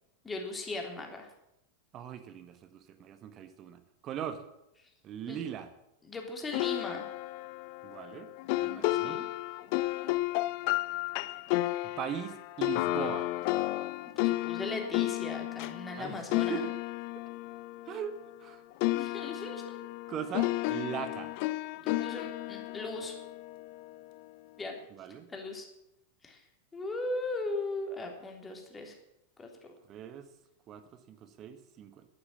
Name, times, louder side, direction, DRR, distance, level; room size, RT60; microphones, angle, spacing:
voice 1, 0.2-1.3 5.3-5.4 6.0-7.1 8.7-9.2 14.2-16.6 18.9-19.8 21.8-23.1 24.6-24.7 25.3-25.7 26.2-26.4 26.7-29.0 29.4-29.5, left 2 dB, 15° left, 2 dB, 3.4 m, -38 dB
voice 2, 1.9-4.4 5.0-5.7 7.8-9.2 12.0-13.3 16.0-16.6 17.8-18.6 20.1-21.3 24.9-25.3 29.8-30.3 30.7-32.0, right 9 dB, 30° right, 10 dB, 1.7 m, -40 dB
sound 1, 6.5-18.5 18.8-24.0, left 19 dB, 45° left, 0.6 m, -33 dB
12.0 x 11.5 x 8.5 m, 0.85 s
figure-of-eight pair, 90°, 0 cm